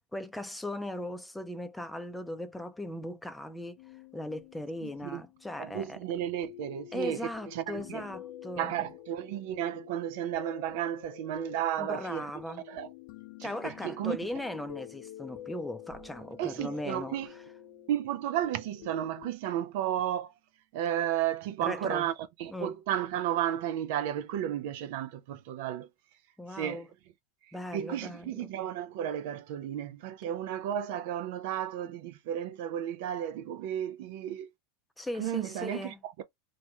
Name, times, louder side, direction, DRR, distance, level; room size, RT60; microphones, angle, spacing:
voice 1, 0.0-3.8 4.1-6.0 6.9-8.9 11.8-12.6 13.4-17.4 21.6-22.1 22.5-22.7 26.4-26.9 27.5-28.5 35.0-36.0, left 1 dB, 5° left, 0.6 m, -38 dB
sound 1, 3.8-19.3, left 13 dB, 60° left, 0.4 m, -49 dB
voice 2, 4.8-5.2 5.6-7.2 7.5-8.0 8.6-12.3 12.7-12.9 13.4-14.2 16.4-17.3 17.9-20.3 20.7-22.1 22.4-25.9 26.5-26.8 27.7-34.5 35.2-36.2, right 11 dB, 65° right, 0.4 m, -33 dB
sound 2, 15.9-21.3, right 12 dB, 30° right, 1.2 m, -61 dB
3.0 x 2.1 x 2.7 m
hypercardioid pair, 95°, 0 cm